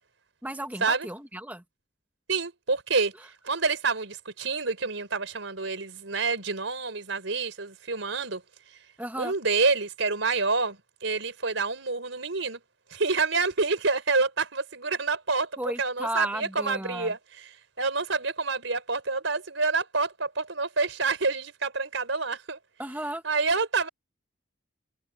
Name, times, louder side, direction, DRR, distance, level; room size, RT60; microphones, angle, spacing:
voice 1, 0.4-1.6 9.0-9.3 15.6-17.1 22.8-23.2, right 1 dB, 10° right, 1.5 m, -34 dB
voice 2, 2.3-3.1 3.4-8.4 9.2-12.6 12.9-15.5 15.8-17.2 17.8-22.6 23.2-23.9, right 4 dB, 85° right, 4.1 m, -27 dB
head